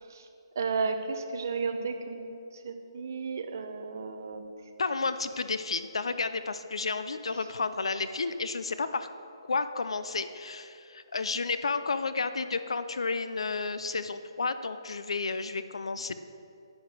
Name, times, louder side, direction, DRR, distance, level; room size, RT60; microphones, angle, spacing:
voice 1, 0.6-2.4 2.6-4.4, right 4 dB, 35° right, 6 dB, 0.8 m, -33 dB
voice 2, 4.8-9.1 9.5-16.2, left 4 dB, 85° left, 11 dB, 0.6 m, -31 dB
10.5 x 9.5 x 6.2 m, 2.7 s
hypercardioid pair, 180°, 3 cm